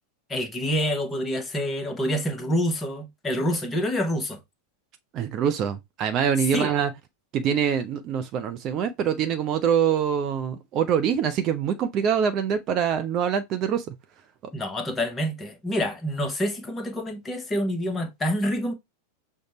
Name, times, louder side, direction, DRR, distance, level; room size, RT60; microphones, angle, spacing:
voice 1, 0.3-4.4 6.5-6.7 14.5-18.7, equal, 15° left, 0.9 m, -27 dB
voice 2, 5.1-6.9 7.3-13.9, right 8 dB, 35° right, 0.5 m, -24 dB
6.3 x 2.2 x 3.0 m
figure-of-eight pair, 90°, 0 cm